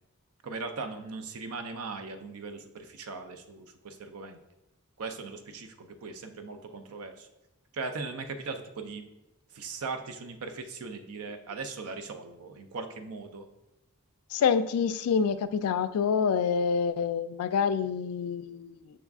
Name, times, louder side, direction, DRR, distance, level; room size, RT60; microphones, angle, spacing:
voice 1, 0.4-4.4 5.0-7.3 7.7-9.1 9.5-13.5, right 4 dB, 85° right, 7 dB, 0.5 m, -39 dB
voice 2, 14.3-18.8, left 6 dB, 80° left, 13 dB, 0.3 m, -27 dB
6.1 x 2.4 x 3.5 m, 0.93 s
head